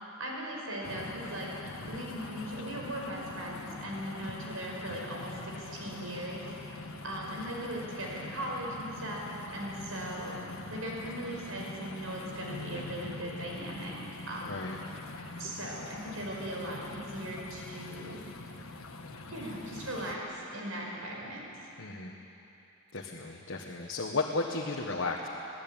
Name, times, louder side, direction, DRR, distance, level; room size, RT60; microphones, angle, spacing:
voice 1, 0.2-1.5 1.9-6.4 7.0-10.4 10.7-14.0 14.3-14.5 15.4-18.2 19.3-21.4, right 1 dB, 85° right, -2 dB, 5.7 m, -39 dB
sound 1, 0.8-20.2, left 2 dB, 90° left, 1.4 m, -43 dB
voice 2, 14.4-14.8 21.8-22.2 22.9-25.3, left 3 dB, 65° left, -1 dB, 1.6 m, -34 dB
23.5 x 17.0 x 9.1 m, 3.0 s
head